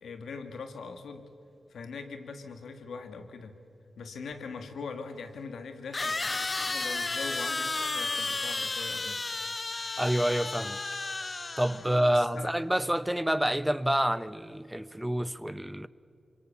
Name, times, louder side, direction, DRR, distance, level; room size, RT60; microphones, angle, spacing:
voice 1, 0.0-1.3 1.7-3.6 4.0-6.2 6.6-9.2 11.9-12.5, left 4 dB, 85° left, 1.9 m, -41 dB
sound 1, 4.3-4.4 5.9-12.1, left 3 dB, 40° left, 0.5 m, -33 dB
voice 2, 10.0-10.8 11.6-15.9, right 1 dB, 5° right, 0.8 m, -28 dB
26.5 x 23.0 x 7.1 m
cardioid pair, 55°, 0 cm